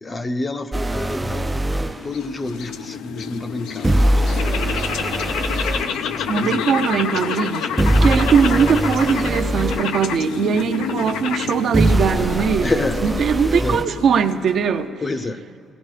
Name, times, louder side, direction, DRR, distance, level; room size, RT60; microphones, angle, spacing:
voice 1, 0.0-1.7 2.0-4.5 5.3-5.5 6.0-6.6 8.0-8.2 12.6-13.0 13.4-13.8 15.0-15.4, left 2 dB, 30° left, 9 dB, 0.6 m, -28 dB
sound 1, 0.7-2.0 3.8-5.9 7.8-9.9 11.7-13.9, right 1 dB, 15° right, 0.3 m, -21 dB
sound 2, 1.5-14.7, left 7 dB, 90° left, 0.5 m, -28 dB
voice 2, 6.3-12.7 13.0-14.9, right 6 dB, 65° right, 7 dB, 0.6 m, -20 dB
19.0 x 18.5 x 3.3 m, 2.5 s
cardioid pair, 90°, 0 cm